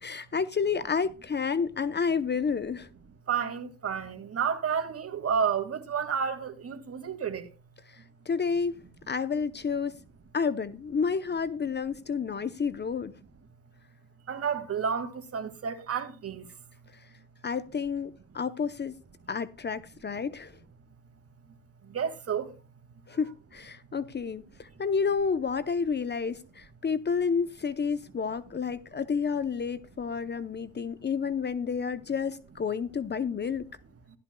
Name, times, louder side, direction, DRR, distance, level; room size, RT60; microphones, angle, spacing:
voice 1, 0.0-2.9 7.9-9.9 10.3-13.2 16.9-17.1 17.4-19.0 19.3-20.5 23.1-33.6, left 5 dB, 30° left, 0.7 m, -30 dB
voice 2, 3.3-7.5 14.3-16.5 21.9-22.5, right 7 dB, 45° right, 2.1 m, -31 dB
15.0 x 12.0 x 2.2 m
cardioid pair, 75°, 33 cm